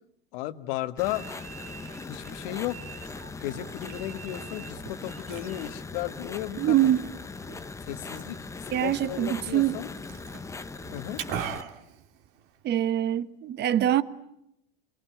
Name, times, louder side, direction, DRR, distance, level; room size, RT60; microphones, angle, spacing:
voice 1, 0.3-1.2 2.1-2.8 3.4-6.9 7.8-9.9 10.9-11.2, left 15 dB, 65° left, 1.7 m, -34 dB
sound 1, 1.0-11.6, left 4 dB, 10° left, 1.0 m, -40 dB
sound 2, 1.0-5.8, right 9 dB, 80° right, 3.6 m, -48 dB
Liquid, 1.8-12.8, right 8 dB, 55° right, 2.8 m, -43 dB
voice 2, 6.6-7.0 8.7-9.8 12.6-14.0, right 12 dB, 35° right, 1.3 m, -24 dB
27.5 x 22.0 x 9.3 m
supercardioid pair, 125°, 31 cm